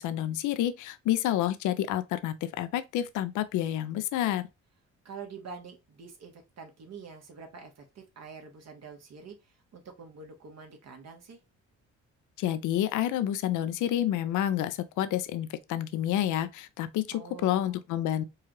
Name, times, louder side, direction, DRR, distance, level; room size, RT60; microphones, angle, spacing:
voice 1, 0.0-4.5 12.4-18.2, left 12 dB, 80° left, 0.5 m, -29 dB
voice 2, 5.0-11.4 17.1-17.9, right 5 dB, 60° right, 1.3 m, -46 dB
4.7 x 2.4 x 3.0 m
cardioid pair, 90°, 30 cm